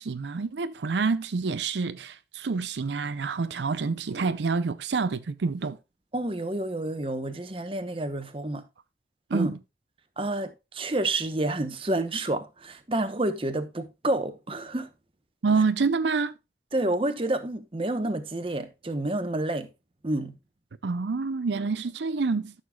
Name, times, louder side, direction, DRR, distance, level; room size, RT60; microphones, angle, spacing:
voice 1, 0.0-5.8 9.3-9.6 15.4-16.3 20.8-22.5, right 4 dB, 80° right, 0.5 m, -27 dB
voice 2, 6.1-8.6 9.3-9.5 10.2-14.9 16.7-19.7 20.0-20.4, right 2 dB, 30° right, 1.0 m, -29 dB
13.0 x 6.6 x 2.3 m
head